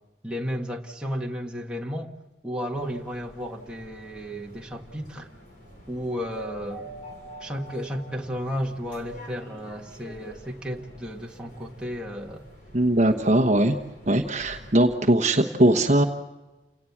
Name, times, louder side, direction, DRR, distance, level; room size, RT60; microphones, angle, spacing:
voice 1, 0.2-2.1 2.4-5.3 5.9-6.9 7.4-12.4 13.4-13.7, equal, 5° right, -1 dB, 1.8 m, -33 dB
sound 1, 2.7-14.9, equal, 45° left, 6.5 m, -46 dB
voice 2, 12.7-13.8 14.1-16.0, right 1 dB, 35° right, 5 dB, 1.2 m, -20 dB
29.5 x 18.0 x 7.3 m, 1.1 s
head